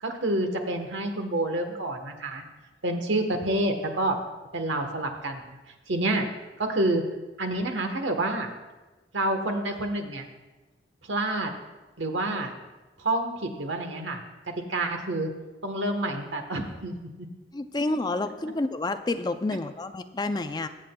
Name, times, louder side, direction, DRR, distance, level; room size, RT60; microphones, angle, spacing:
voice 1, 0.0-2.4 2.8-4.2 4.5-5.6 5.9-6.2 6.6-7.0 7.4-8.5 9.1-10.2 11.1-11.5 12.0-12.5 13.0-14.2 14.5-15.3 15.6-17.3, right 1 dB, 90° right, 5 dB, 1.2 m, -28 dB
voice 2, 17.5-20.7, left 2 dB, 20° left, 9 dB, 0.4 m, -29 dB
22.5 x 7.6 x 2.3 m, 1.2 s
head